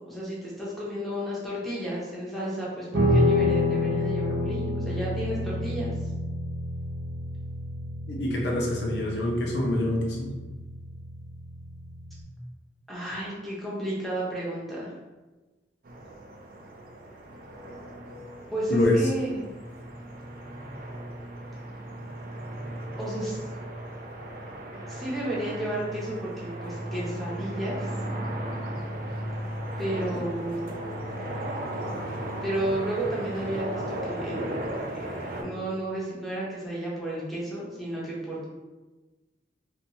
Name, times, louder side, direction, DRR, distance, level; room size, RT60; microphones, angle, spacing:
voice 1, 0.0-5.9 12.9-14.9 18.5-19.4 23.0-23.4 24.9-27.9 29.8-30.8 32.4-34.4 35.1-38.4, right 1 dB, ahead, -7 dB, 0.6 m, -32 dB
Guitar, 2.9-12.2, left 1 dB, 85° right, 0.7 m, -29 dB
voice 2, 8.1-10.3 18.7-19.0, left 1 dB, 70° left, 0 dB, 0.6 m, -25 dB
sound 1, 15.8-35.4, right 1 dB, 55° right, 0.4 m, -36 dB
2.7 x 2.3 x 2.7 m, 1.2 s
head